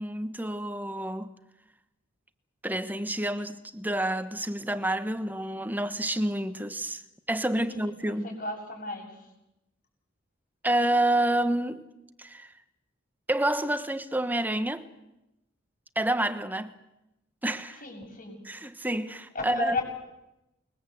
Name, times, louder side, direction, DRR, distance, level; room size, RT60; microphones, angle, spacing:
voice 1, 0.0-1.3 2.6-7.0 7.3-8.4 10.6-11.9 12.2-12.5 13.3-14.9 15.9-16.7 17.4-17.8 18.4-19.8, right 1 dB, 10° right, 1.2 m, -28 dB
voice 2, 8.0-9.1 17.8-18.4 19.3-19.8, left 3 dB, 45° left, 7.2 m, -34 dB
28.5 x 22.0 x 7.9 m
head